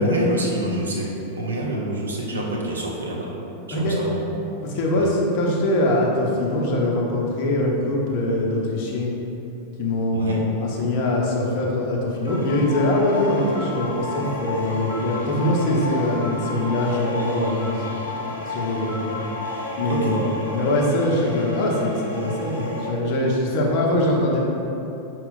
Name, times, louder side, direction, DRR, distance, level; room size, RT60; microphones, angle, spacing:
voice 1, 0.0-3.3 3.8-4.2 4.9-5.1 10.1-10.4 19.9-20.2, right 1 dB, 70° right, -2 dB, 0.6 m, -27 dB
voice 2, 4.6-9.1 9.8-18.0 18.3-19.2 19.8-24.4, left 1 dB, 45° left, -2 dB, 0.8 m, -23 dB
sound 1, 12.2-22.9, left 2 dB, 75° left, 1.0 m, -32 dB
5.5 x 2.3 x 4.0 m, 2.9 s
figure-of-eight pair, 90°, 0 cm